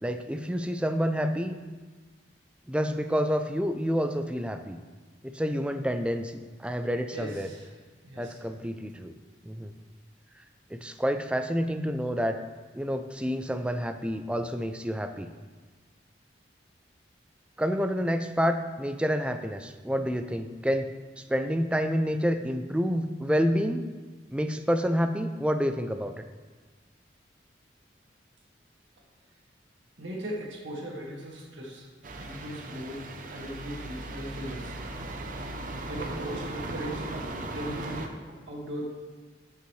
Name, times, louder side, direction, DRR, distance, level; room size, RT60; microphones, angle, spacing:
voice 1, 0.0-1.5 2.7-4.8 5.2-7.5 8.2-9.1 9.4-9.7 10.7-12.4 12.7-15.3 17.6-20.9 21.2-23.9 24.3-26.1 36.1-36.2, equal, 5° right, 8 dB, 0.3 m, -28 dB
voice 2, 7.1-7.7 8.0-8.4 30.0-31.9 32.2-33.0 33.3-34.7 35.9-37.3 37.5-38.1 38.5-38.9, equal, 85° right, -4 dB, 1.9 m, -38 dB
sound 1, 32.0-38.1, right 2 dB, 45° right, 0.6 m, -37 dB
12.5 x 5.5 x 3.2 m, 1.4 s
head